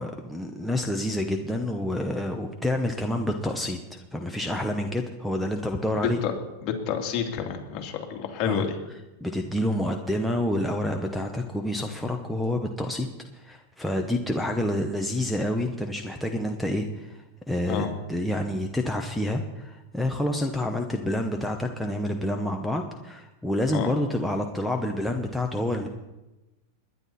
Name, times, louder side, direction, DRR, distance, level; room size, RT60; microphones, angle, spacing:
voice 1, 0.0-6.2 8.4-8.6 9.2-13.1 13.3-25.9, left 1 dB, ahead, 2 dB, 0.9 m, -28 dB
voice 2, 6.0-6.3 6.6-8.7 17.7-17.9 23.7-23.9, left 8 dB, 40° left, 2 dB, 2.5 m, -29 dB
21.5 x 10.0 x 4.2 m, 1.0 s
supercardioid pair, 140°, 0 cm